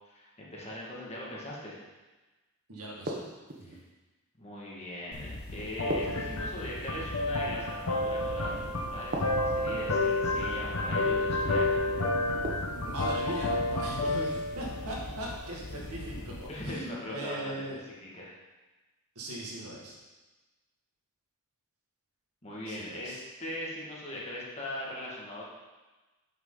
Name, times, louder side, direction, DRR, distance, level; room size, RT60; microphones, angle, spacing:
voice 1, 0.1-1.8 3.6-3.8 4.4-11.9 16.5-17.5 18.0-18.3 22.4-25.4, left 1 dB, 30° left, -5 dB, 1.9 m, -40 dB
voice 2, 2.7-3.2 3.6-3.8 12.7-17.8 19.2-20.0 22.7-23.3, right 1 dB, 85° right, -3 dB, 2.0 m, -39 dB
sound 1, 3.1-3.8 5.9-6.9 9.1-9.9 12.4-13.1, right 1 dB, 40° right, 1.0 m, -37 dB
sound 2, 5.1-16.7, left 2 dB, 80° left, 1.0 m, -31 dB
8.4 x 6.4 x 4.0 m, 1.2 s
head